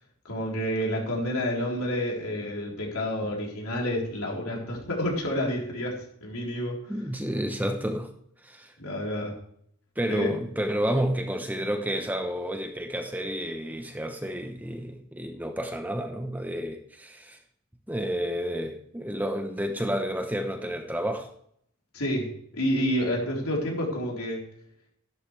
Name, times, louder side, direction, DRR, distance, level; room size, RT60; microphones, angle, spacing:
voice 1, 0.3-6.9 8.8-9.4 10.1-10.3 21.9-24.4, equal, 70° left, -2 dB, 3.8 m, -29 dB
voice 2, 6.9-8.1 8.4-8.7 10.0-17.4 17.9-21.3, equal, 5° right, 5 dB, 0.8 m, -30 dB
13.0 x 11.5 x 3.3 m, 0.67 s
head